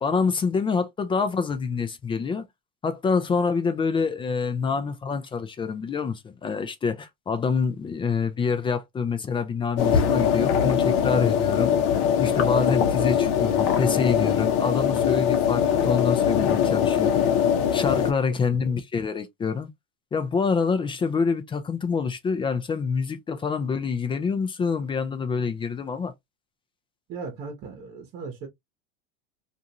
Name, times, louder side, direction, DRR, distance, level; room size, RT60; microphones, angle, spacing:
voice 1, 0.0-2.5 2.8-11.7 12.2-17.2 17.7-19.7 20.1-26.1, left 5 dB, 15° left, 0.5 m, -26 dB
sound 1, 9.8-18.1, left 8 dB, 50° left, 0.9 m, -22 dB
voice 2, 27.1-28.5, right 4 dB, 40° right, 1.0 m, -37 dB
2.5 x 2.4 x 2.9 m
supercardioid pair, 115°, 29 cm